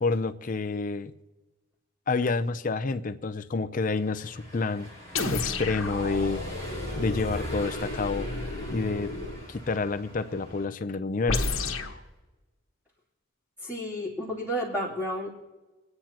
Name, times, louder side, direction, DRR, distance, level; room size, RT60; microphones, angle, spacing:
voice 1, 0.0-1.1 2.1-4.9 5.3-6.4 7.0-8.3 8.7-9.1 9.5-11.5, left 3 dB, 40° left, 11 dB, 0.5 m, -28 dB
Car passing by / Engine, 3.9-10.7, equal, 45° right, 3.4 m, -42 dB
sound 1, 5.2-9.5 11.3-12.0, left 2 dB, 80° left, 1.5 m, -32 dB
voice 2, 13.6-15.3, equal, 10° right, -8 dB, 2.8 m, -31 dB
26.5 x 9.6 x 2.9 m, 1.2 s
head